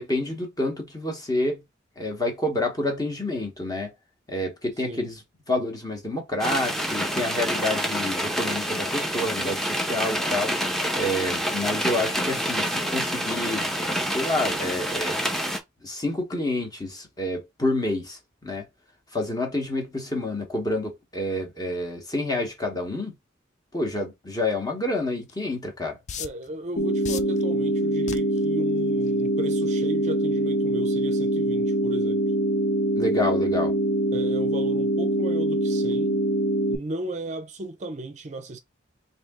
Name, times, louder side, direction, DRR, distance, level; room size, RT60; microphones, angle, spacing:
voice 1, 0.0-1.6 2.0-3.9 4.3-5.2 5.5-10.5 10.9-15.2 15.8-18.6 19.1-23.1 23.7-26.0 33.0-33.7, left 1 dB, 20° left, 1.0 m, -28 dB
voice 2, 4.8-5.1 26.2-32.2 34.1-36.2 36.7-38.6, right 2 dB, 35° right, 0.5 m, -35 dB
sound 1, 6.4-15.6, equal, ahead, 0.6 m, -27 dB
sound 2, 25.3-25.4 26.1-26.5 27.0-27.4 28.1-28.4 29.1-29.3, left 8 dB, 35° left, 0.3 m, -34 dB
sound 3, 26.8-36.8, right 1 dB, 70° left, 0.8 m, -24 dB
3.3 x 2.7 x 3.5 m
head